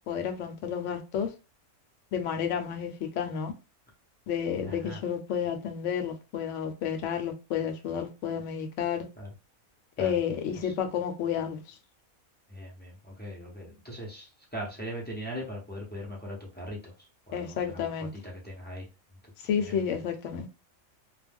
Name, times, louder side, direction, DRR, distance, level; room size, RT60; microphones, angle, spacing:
voice 1, 0.1-1.3 2.1-3.5 4.3-9.0 10.0-11.6 17.3-18.1 19.4-20.5, left 8 dB, 65° left, 0.9 m, -31 dB
voice 2, 4.6-5.0 9.2-9.3 10.0-10.2 10.6-10.7 12.5-18.9 19.2-19.3 19.6-19.9, equal, 15° left, 0.3 m, -40 dB
2.4 x 2.2 x 3.4 m
omnidirectional pair, 1.5 m